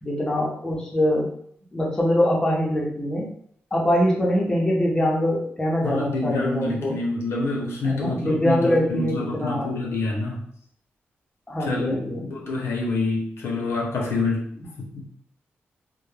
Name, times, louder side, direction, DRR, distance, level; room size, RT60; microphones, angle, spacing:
voice 1, 0.0-1.3 1.7-3.3 3.7-7.0 7.8-9.7 11.5-12.3, left 1 dB, 15° left, -4 dB, 0.6 m, -23 dB
voice 2, 5.8-10.4 11.7-15.1, left 3 dB, 80° left, -2 dB, 0.7 m, -27 dB
2.2 x 2.1 x 3.1 m, 0.63 s
wide cardioid pair, 175°, 4 cm